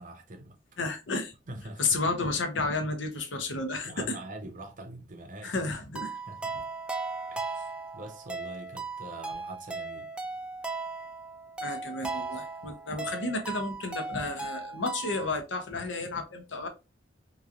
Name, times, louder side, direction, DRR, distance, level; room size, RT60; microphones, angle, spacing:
voice 1, 0.0-0.6 1.5-2.0 3.8-5.5 6.3-6.5 7.3-10.1, right 2 dB, 45° right, 0.6 m, -44 dB
voice 2, 0.8-1.3 1.8-4.2 5.4-6.2 11.6-16.7, left 3 dB, 85° left, 0.7 m, -32 dB
sound 1, 5.9-15.3, right 4 dB, 5° right, 0.3 m, -37 dB
3.0 x 2.3 x 2.4 m
head